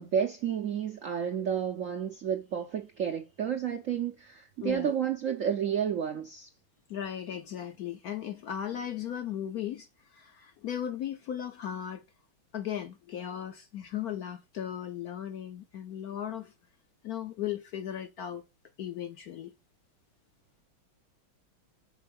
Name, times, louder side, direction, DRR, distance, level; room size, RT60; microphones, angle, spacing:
voice 1, 0.0-6.5, right 8 dB, 65° right, 0.7 m, -31 dB
voice 2, 4.6-4.9 6.9-12.0 12.5-16.5 17.0-18.4 18.8-19.5, left 10 dB, 65° left, 1.0 m, -37 dB
6.0 x 4.3 x 5.2 m
omnidirectional pair, 2.2 m